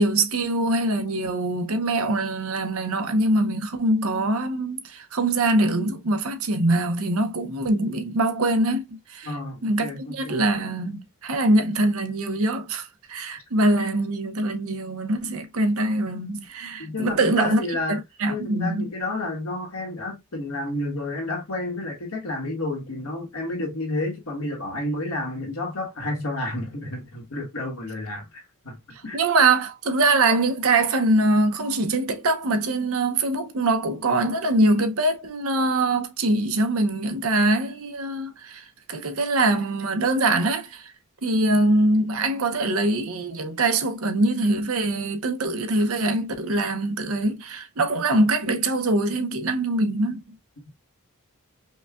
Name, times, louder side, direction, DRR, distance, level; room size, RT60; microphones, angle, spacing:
voice 1, 0.0-9.3 9.6-17.6 17.9-18.9 29.1-40.9 41.2-50.2, right 2 dB, 70° right, 0.8 m, -23 dB
voice 2, 9.2-10.5 16.8-18.0 18.3-29.2, left 2 dB, 75° left, 1.5 m, -31 dB
5.3 x 2.3 x 2.3 m
head